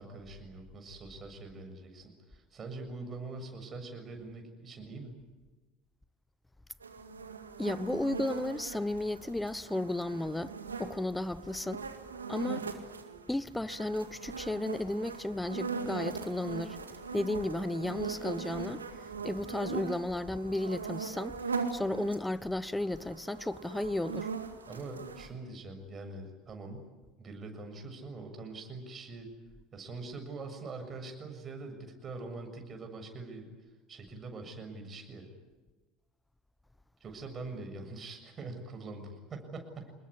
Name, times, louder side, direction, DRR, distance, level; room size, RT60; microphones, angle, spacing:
voice 1, 0.0-5.2 24.7-26.9 27.2-29.3 29.7-33.5 33.9-35.3 37.0-39.9, right 3 dB, 35° right, 7.2 m, -43 dB
sound 1, 6.8-13.3 13.7-22.3 22.7-25.3, right 5 dB, 90° right, 2.1 m, -40 dB
voice 2, 7.6-10.5 10.8-11.8 12.3-12.6 13.3-16.8 17.1-18.8 19.2-21.4 21.7-24.3, left 1 dB, 5° left, 1.1 m, -34 dB
27.5 x 21.0 x 9.8 m
hypercardioid pair, 75°, 0 cm